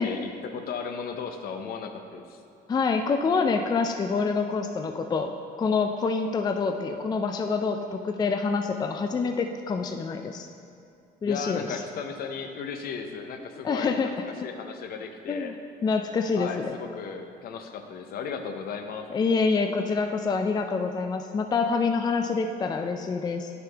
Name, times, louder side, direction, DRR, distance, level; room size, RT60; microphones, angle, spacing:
voice 1, 0.0-2.4 11.2-15.5 16.3-19.1, left 6 dB, 60° left, 6 dB, 0.7 m, -35 dB
voice 2, 2.7-5.3 5.6-10.5 11.2-11.8 13.6-14.1 15.3-15.5 15.8-16.7 19.1-23.5, left 4 dB, 25° left, 6 dB, 0.4 m, -26 dB
9.1 x 6.7 x 3.4 m, 2.5 s
cardioid pair, 110°, 17 cm